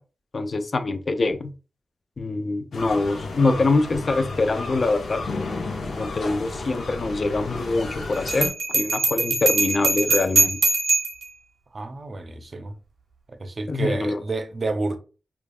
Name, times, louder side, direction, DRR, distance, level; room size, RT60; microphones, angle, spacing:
voice 1, 0.3-1.5 2.2-5.2 5.9-10.6 13.7-14.1, left 3 dB, 45° left, 0.4 m, -24 dB
sound 1, 2.7-8.5, left 3 dB, 85° left, 0.7 m, -32 dB
Bell, 8.3-11.2, right 3 dB, 90° right, 0.8 m, -22 dB
voice 2, 11.7-12.8 13.3-15.0, right 3 dB, 45° right, 0.5 m, -29 dB
5.0 x 2.3 x 2.3 m
wide cardioid pair, 105°, 0 cm